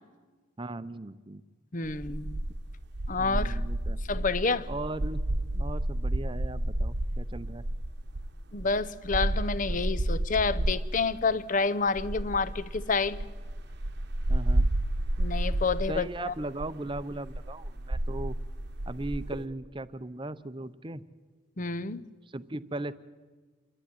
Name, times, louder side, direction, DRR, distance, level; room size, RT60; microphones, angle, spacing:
voice 1, 0.6-1.4 3.2-4.0 4.7-5.2 5.5-7.7 14.3-14.7 15.9-18.3 18.9-21.0 22.3-22.9, right 2 dB, 25° right, 14 dB, 0.7 m, -37 dB
voice 2, 1.7-2.4 3.1-3.6 4.1-4.7 8.5-13.2 15.2-16.3 21.6-22.1, left 4 dB, 40° left, 15 dB, 0.7 m, -29 dB
sound 1, 1.9-11.0 11.9-19.4, right 1 dB, 55° right, 1.0 m, -31 dB
28.0 x 12.0 x 9.9 m, 1.4 s
head